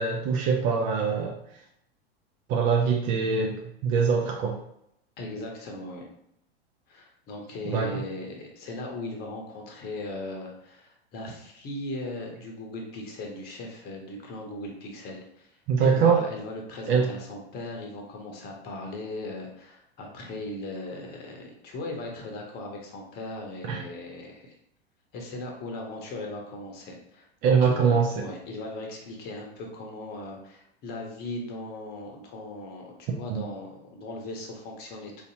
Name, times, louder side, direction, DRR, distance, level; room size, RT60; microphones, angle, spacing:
voice 1, 0.0-1.4 2.5-3.6 3.8-4.6 7.7-8.0 15.7-16.3 16.9-17.1 23.6-23.8 27.4-28.3 33.3-33.4, right 5 dB, 30° right, 1 dB, 0.4 m, -23 dB
voice 2, 5.2-6.0 6.9-15.5 15.8-24.6 25.1-35.2, left 2 dB, 30° left, 1 dB, 0.9 m, -38 dB
4.3 x 2.7 x 2.7 m, 0.74 s
figure-of-eight pair, 90°, 31 cm